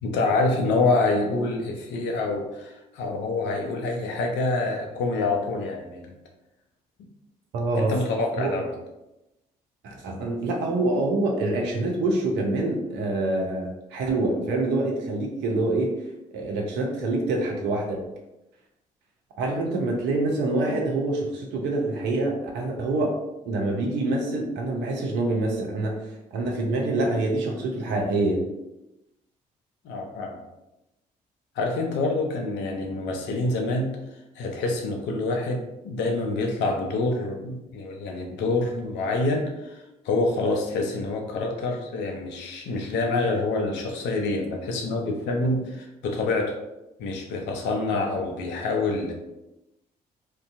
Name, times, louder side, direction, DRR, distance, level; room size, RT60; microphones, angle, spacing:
voice 1, 0.0-6.1 7.8-8.7 29.8-30.4 31.6-34.0 34.4-46.6 47.0-49.1, left 2 dB, 65° left, 2 dB, 0.5 m, -26 dB
voice 2, 7.5-7.9 8.4-8.5 9.8-16.0 16.3-18.0 19.4-23.2 23.4-25.9 26.3-28.4 47.9-48.0, right 2 dB, 65° right, 1 dB, 0.6 m, -26 dB
2.6 x 2.2 x 2.4 m, 0.94 s
hypercardioid pair, 45°, 20 cm